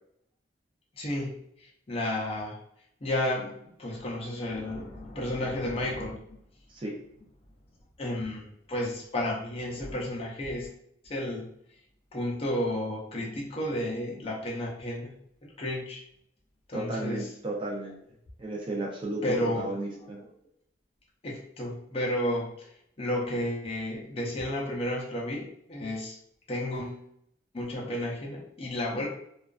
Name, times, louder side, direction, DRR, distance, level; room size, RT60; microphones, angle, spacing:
voice 1, 1.0-2.6 3.0-6.4 8.0-10.7 11.0-11.5 12.1-15.1 15.4-16.0 16.7-17.3 19.2-20.2 21.2-22.7 23.0-26.2 26.5-27.0 27.5-29.1, left 1 dB, 30° left, -3 dB, 0.5 m, -32 dB
voice 2, 16.7-18.0 18.4-19.2 19.6-20.2, right 2 dB, 30° right, -2 dB, 0.4 m, -34 dB
2.4 x 2.2 x 2.3 m, 0.71 s
head